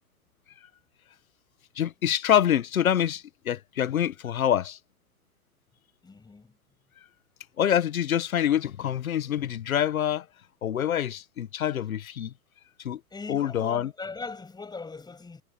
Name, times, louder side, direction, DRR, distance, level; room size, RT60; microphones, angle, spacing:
voice 1, 1.8-4.8 7.6-10.3 10.6-12.3 12.8-13.0 13.3-13.9, left 10 dB, 65° left, 1.7 m, -26 dB
voice 2, 6.0-6.6 13.1-15.4, left 4 dB, 10° left, 6.7 m, -40 dB
figure-of-eight pair, 110°, 44 cm